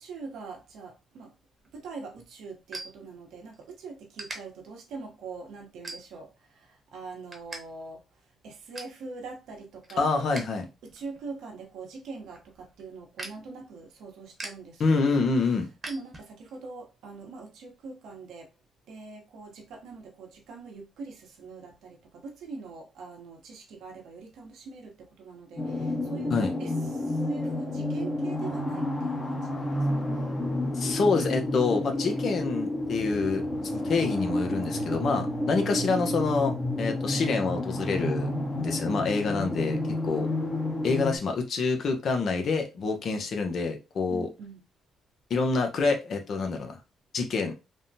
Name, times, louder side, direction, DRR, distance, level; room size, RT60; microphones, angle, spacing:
voice 1, 0.0-1.3 1.7-8.0 8.4-10.4 10.8-15.5 15.9-18.5 18.9-30.4 44.1-44.6, right 4 dB, 80° right, 0.9 m, -43 dB
sound 1, 1.6-3.6 4.1-4.4 4.9-5.2 5.8-6.4 6.8-7.6 7.9-8.0 8.4-9.0 9.5-10.6 10.9-16.6, right 2 dB, 30° right, 1.0 m, -43 dB
voice 2, 10.0-10.6 14.8-15.7 26.3-26.5 30.7-38.3 38.6-40.3 40.8-44.3 45.3-46.8 47.1-47.5, left 4 dB, 60° left, 0.7 m, -27 dB
sound 2, 25.6-41.2, left 1 dB, 20° left, 0.8 m, -30 dB
3.4 x 2.1 x 2.7 m
cardioid pair, 90°, 0 cm